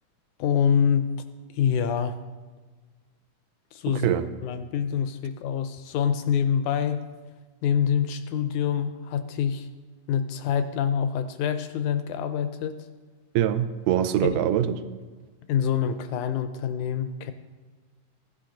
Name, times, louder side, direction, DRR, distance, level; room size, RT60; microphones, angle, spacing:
voice 1, 0.4-1.1 1.5-2.2 3.7-4.1 4.4-7.0 7.6-9.7 10.1-12.9 14.2-14.4 15.5-17.3, left 8 dB, 80° left, 10 dB, 1.8 m, -26 dB
voice 2, 3.9-4.3 13.4-14.9, right 10 dB, 85° right, 9 dB, 2.3 m, -24 dB
15.5 x 11.0 x 3.9 m, 1.4 s
omnidirectional pair, 3.7 m